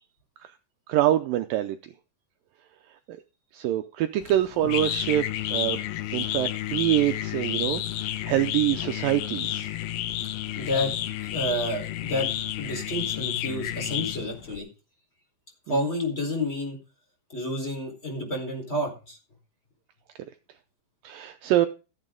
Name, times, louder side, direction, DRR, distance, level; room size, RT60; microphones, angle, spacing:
voice 1, 0.9-1.8 3.1-3.2 3.5-5.2 5.5-5.8 6.1-9.7 15.7-15.8 21.0-21.7, right 13 dB, 75° right, 9 dB, 2.2 m, -25 dB
sound 1, 4.2-14.6, left 13 dB, 75° left, 2.7 m, -31 dB
voice 2, 10.5-10.9 11.2-14.7 15.7-16.8 17.3-19.2, left 1 dB, 15° left, 1 dB, 4.5 m, -30 dB
15.0 x 9.0 x 3.8 m, 0.32 s
omnidirectional pair, 4.4 m